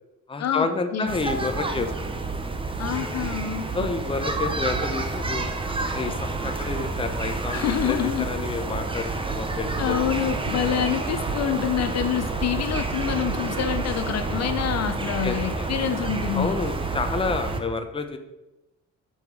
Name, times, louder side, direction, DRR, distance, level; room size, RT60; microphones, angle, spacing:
voice 1, 0.3-1.9 3.7-5.5 5.9-10.1 15.2-15.7 16.3-18.2, left 4 dB, 20° left, 7 dB, 0.7 m, -29 dB
sound 1, 1.1-17.6, right 3 dB, 15° right, 0.8 m, -29 dB
voice 2, 2.8-3.9 7.5-8.3 9.8-16.6, left 9 dB, 60° left, 9 dB, 0.6 m, -27 dB
5.5 x 4.6 x 6.0 m, 1.0 s
cardioid pair, 90°, 30 cm